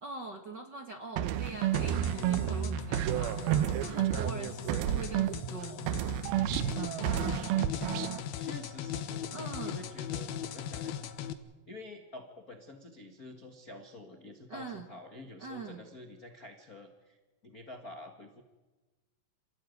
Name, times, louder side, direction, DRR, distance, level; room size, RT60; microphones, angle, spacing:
voice 1, 0.0-3.4 3.7-5.9 9.3-9.8 14.5-14.9 15.4-15.9, right 3 dB, 45° right, 4 dB, 1.4 m, -42 dB
sound 1, 1.2-5.6 5.9-8.2, right 11 dB, 80° right, 2.8 m, -30 dB
sound 2, 1.7-11.3, left 9 dB, 75° left, 3.0 m, -39 dB
voice 2, 7.2-7.9 8.4-11.0 11.7-17.2 17.4-18.4, left 2 dB, 45° left, 5 dB, 1.1 m, -48 dB
27.5 x 18.0 x 9.4 m, 1.2 s
omnidirectional pair, 4.3 m